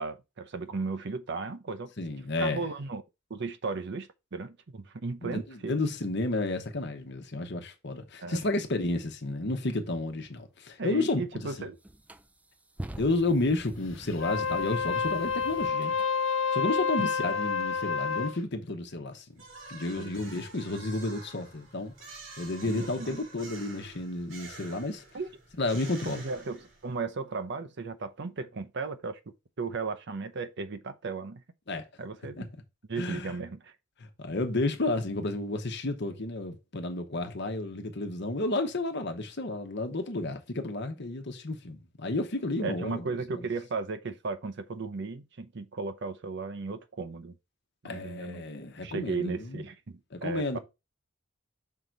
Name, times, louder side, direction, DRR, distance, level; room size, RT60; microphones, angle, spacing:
voice 1, 0.0-1.9 2.4-3.0 3.3-5.8 8.2-8.4 10.8-11.8 20.0-20.1 22.6-23.2 25.1-25.3 26.0-29.2 29.6-31.4 32.0-32.5 32.9-33.7 42.6-47.4 47.8-48.4 48.8-50.6, right 4 dB, 60° right, 0.7 m, -35 dB
voice 2, 2.0-2.7 5.2-11.4 13.0-16.0 16.5-19.4 19.7-21.9 22.4-25.0 25.6-26.2 31.7-31.8 32.4-32.5 33.0-33.3 34.2-43.1 47.8-49.6 50.1-50.6, left 2 dB, 60° left, 1.1 m, -31 dB
sound 1, 11.1-11.2 11.8-16.1, right 1 dB, 5° right, 0.4 m, -45 dB
Wind instrument woodwind instrument, 14.1-18.4, left 5 dB, 90° left, 0.6 m, -29 dB
sound 2, 19.4-27.0, right 3 dB, 80° right, 2.7 m, -48 dB
5.6 x 3.9 x 4.5 m
head